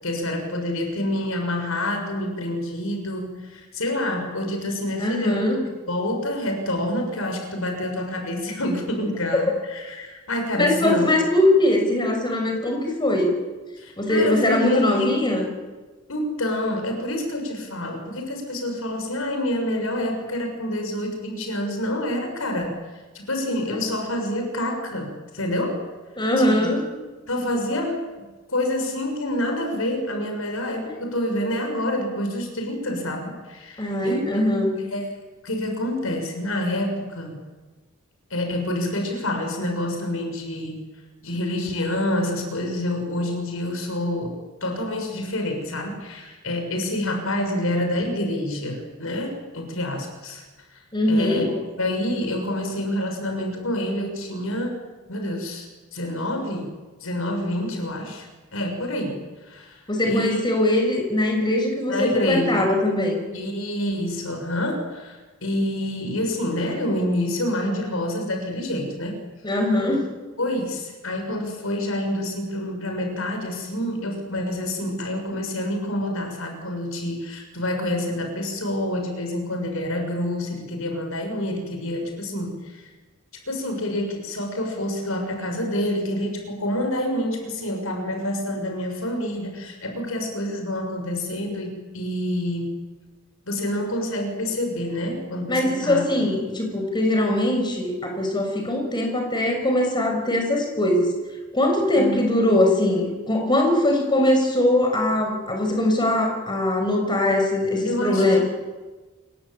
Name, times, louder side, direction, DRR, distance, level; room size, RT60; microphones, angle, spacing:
voice 1, 0.0-5.5 5.9-11.1 13.8-15.1 16.1-22.8 23.1-25.8 26.4-26.7 27.3-28.1 28.5-34.3 34.9-35.1 35.4-37.4 38.3-40.8 41.2-50.4 51.1-51.5 51.8-54.8 55.1-56.7 57.0-60.4 61.9-62.7 63.3-69.2 69.9-70.0 70.4-82.9 83.5-92.8 93.5-96.1 101.9-102.2 107.8-108.4, left 1 dB, 75° left, 4 dB, 6.9 m, -27 dB
voice 2, 5.0-5.6 10.5-13.3 14.0-15.5 26.2-26.8 33.8-34.7 50.9-51.5 59.9-63.2 69.4-70.1 95.5-101.2 101.5-108.4, left 1 dB, 20° left, 3 dB, 6.5 m, -21 dB
28.5 x 23.0 x 8.8 m, 1.3 s
head